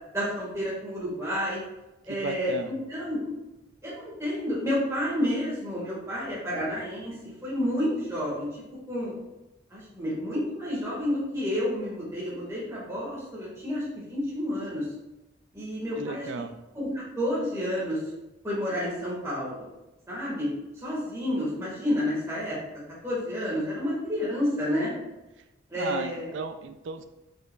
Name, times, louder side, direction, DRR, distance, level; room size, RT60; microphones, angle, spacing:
voice 1, 0.1-1.6 2.1-3.3 3.8-8.6 8.9-9.1 9.7-14.9 15.5-16.3 16.8-18.0 18.4-19.7 20.1-20.5 20.8-22.6 23.0-24.9 25.7-26.3, left 1 dB, 15° right, -7 dB, 1.7 m, -30 dB
voice 2, 2.1-2.7 16.0-16.5 25.7-27.0, right 4 dB, 65° right, 8 dB, 0.4 m, -35 dB
8.1 x 5.1 x 2.4 m, 0.98 s
head